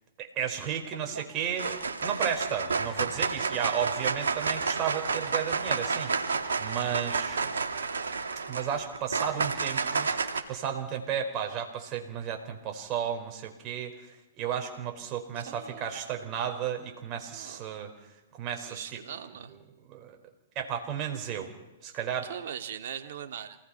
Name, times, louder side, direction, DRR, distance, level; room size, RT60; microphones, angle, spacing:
voice 1, 0.2-6.1 6.6-7.4 8.5-10.1 10.5-13.9 14.4-17.9 18.4-18.8 19.9-20.2 20.5-21.5 21.8-22.3, right 8 dB, 35° right, 4 dB, 5.0 m, -33 dB
sound 1, 0.9-1.2 1.6-10.4, right 4 dB, 85° right, 2.6 m, -30 dB
voice 2, 15.3-16.0 17.3-17.6 18.7-19.5 22.2-23.6, right 9 dB, 65° right, 7 dB, 2.4 m, -40 dB
28.0 x 19.5 x 5.8 m, 1.1 s
hypercardioid pair, 125°, 0 cm